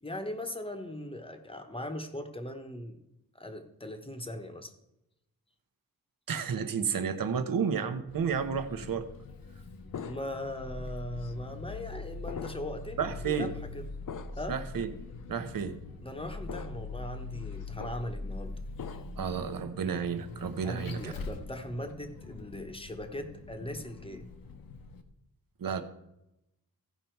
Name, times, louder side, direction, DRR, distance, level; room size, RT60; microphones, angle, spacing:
voice 1, 0.0-3.0 3.3-4.7 10.0-13.5 13.7-13.8 14.3-14.6 16.0-18.6 20.6-24.3, left 1 dB, 15° left, 5 dB, 0.9 m, -39 dB
voice 2, 6.3-9.1 13.0-13.5 14.5-14.9 15.3-15.8 19.2-21.1 25.6-25.8, right 6 dB, 75° right, 9 dB, 1.0 m, -31 dB
Vehicle, 8.1-25.0, left 3 dB, 80° left, 1.0 m, -43 dB
sound 1, 9.9-10.6 11.2-11.3 12.3-12.8 13.2-13.4 14.1-14.5 15.2-15.3 16.5-17.0 17.3-18.0 18.8-19.3, left 7 dB, 60° left, 0.6 m, -43 dB
15.5 x 5.5 x 4.5 m, 0.87 s
wide cardioid pair, 175°, 35 cm